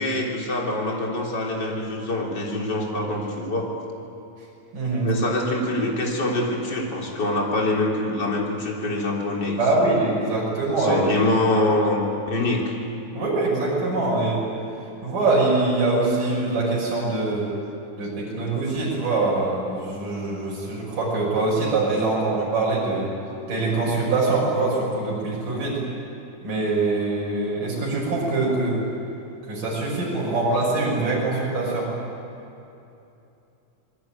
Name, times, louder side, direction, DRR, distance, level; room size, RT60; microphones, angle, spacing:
voice 1, 0.0-3.7 5.0-10.0 10.8-12.7, left 2 dB, 30° left, -1 dB, 4.0 m, -25 dB
voice 2, 4.7-5.1 9.6-11.1 13.1-14.4 15.0-17.5 18.0-23.1 23.5-25.8 26.4-28.8 29.5-31.9, right 3 dB, 80° right, -5 dB, 7.9 m, -23 dB
27.5 x 21.0 x 9.1 m, 2.8 s
omnidirectional pair, 3.7 m